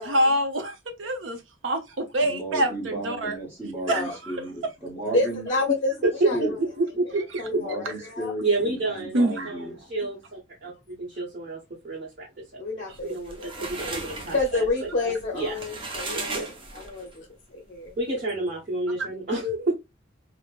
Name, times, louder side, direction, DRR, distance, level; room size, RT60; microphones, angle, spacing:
voice 1, 0.0-1.4 1.6-3.4 3.9-4.0 9.1-9.5, right 1 dB, 75° right, 0.7 m, -25 dB
voice 2, 2.2-5.5 6.3-6.5 7.5-9.7, right 1 dB, 10° right, 1.4 m, -34 dB
voice 3, 3.9-4.2 5.1-6.5 7.4-8.3 12.6-13.9 14.3-16.5 16.7-17.9, left 3 dB, 40° left, 0.6 m, -29 dB
voice 4, 6.0-7.2 7.5-7.6 7.9-8.1 8.4-12.3 12.7-15.6 16.1-16.6 18.0-19.7, right 2 dB, 45° right, 0.9 m, -29 dB
sound 1, 13.0-17.2, right 3 dB, 25° right, 0.5 m, -36 dB
3.2 x 2.0 x 2.3 m
head